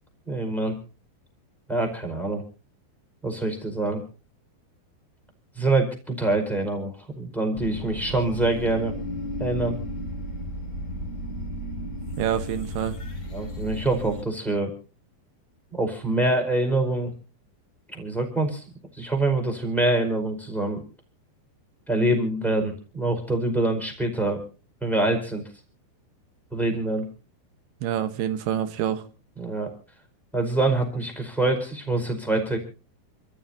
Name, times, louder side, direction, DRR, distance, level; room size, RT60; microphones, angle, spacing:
voice 1, 0.3-0.8 1.7-2.4 3.2-4.0 5.6-8.9 9.4-9.8 13.3-14.7 15.7-17.1 17.9-18.6 18.9-20.8 21.9-24.4 24.8-25.4 26.5-27.0 29.4-29.7 30.3-32.6, right 2 dB, ahead, 3 dB, 4.4 m, -25 dB
sound 1, 7.5-14.2, equal, 30° left, 1.5 m, -34 dB
voice 2, 12.2-13.0 27.8-29.0, right 10 dB, 75° right, 11 dB, 3.0 m, -27 dB
28.5 x 14.0 x 2.8 m, 0.35 s
omnidirectional pair, 5.0 m